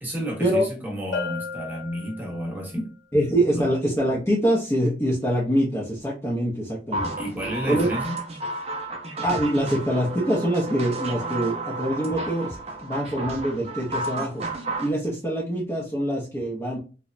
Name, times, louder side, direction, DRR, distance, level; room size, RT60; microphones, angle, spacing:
voice 1, 0.0-2.9 3.4-3.7 7.2-8.2, equal, 10° right, -1 dB, 0.8 m, -31 dB
Bell, 1.1-2.7, left 5 dB, 70° left, 0.9 m, -34 dB
voice 2, 3.1-7.1 7.7-7.9 9.2-12.6 12.8-14.4 14.8-16.8, equal, 15° left, -4 dB, 0.5 m, -24 dB
sound 1, 6.9-14.9, right 2 dB, 35° right, 0.5 m, -32 dB
2.9 x 2.1 x 2.4 m, 0.33 s
head